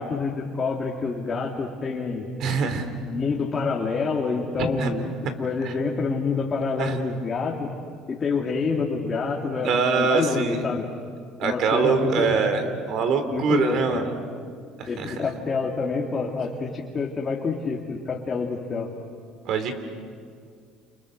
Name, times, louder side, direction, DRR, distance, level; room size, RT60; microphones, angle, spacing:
voice 1, 0.0-2.3 3.0-7.7 8.1-10.9 11.4-12.4 13.3-14.0 14.9-18.9, left 4 dB, 30° left, -1 dB, 2.5 m, -27 dB
voice 2, 2.4-2.9 4.6-4.9 6.8-7.0 9.6-10.6 11.4-12.6 12.9-14.1 14.8-15.2 19.5-19.8, right 5 dB, 60° right, 8 dB, 3.5 m, -24 dB
29.5 x 29.5 x 6.6 m, 2.1 s
cardioid pair, 110°, 0 cm